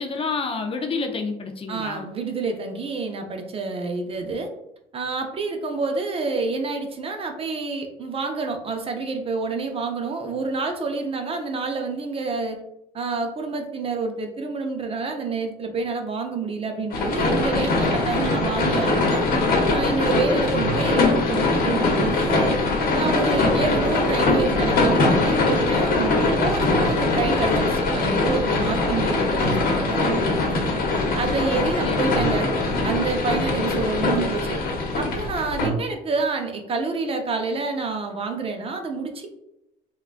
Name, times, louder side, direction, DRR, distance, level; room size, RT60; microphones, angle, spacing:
voice 1, 0.0-2.1 31.8-32.3, left 4 dB, 35° left, 5 dB, 0.4 m, -29 dB
voice 2, 1.7-4.5 4.9-12.6 12.9-19.2 19.7-22.6 22.9-30.4 31.2-32.5 32.8-34.6 34.9-39.3, right 4 dB, 35° right, 4 dB, 0.5 m, -28 dB
sound 1, 16.9-35.7, left 2 dB, 60° left, 0.9 m, -22 dB
3.6 x 2.3 x 2.4 m, 0.85 s
cardioid pair, 110°, 17 cm